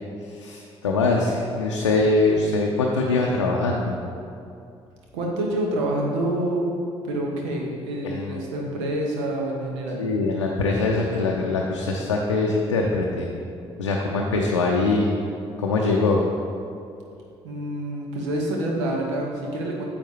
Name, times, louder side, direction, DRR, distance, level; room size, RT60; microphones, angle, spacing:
voice 1, 0.2-4.0 8.0-8.5 10.0-13.3 13.8-15.1 15.6-16.2, left 3 dB, 85° left, -2 dB, 0.5 m, -23 dB
voice 2, 5.1-6.7 7.0-10.0 17.4-19.8, right 1 dB, 75° right, -1 dB, 1.1 m, -27 dB
9.0 x 7.0 x 2.9 m, 2.5 s
figure-of-eight pair, 45°, 15 cm